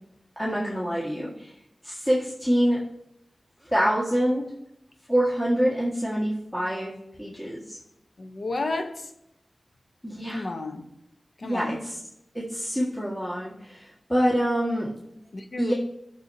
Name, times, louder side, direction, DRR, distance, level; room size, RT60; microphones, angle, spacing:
voice 1, 0.4-1.5 1.8-2.8 3.6-4.5 5.1-7.8 10.0-10.5 11.4-11.8 12.3-14.9 15.6-15.7, equal, 15° left, 1.8 m, -26 dB
voice 2, 8.2-9.1 10.3-10.8 11.4-11.8 15.3-15.7, left 2 dB, 65° left, 0.9 m, -32 dB
16.0 x 6.7 x 2.8 m
wide cardioid pair, 90°, 0 cm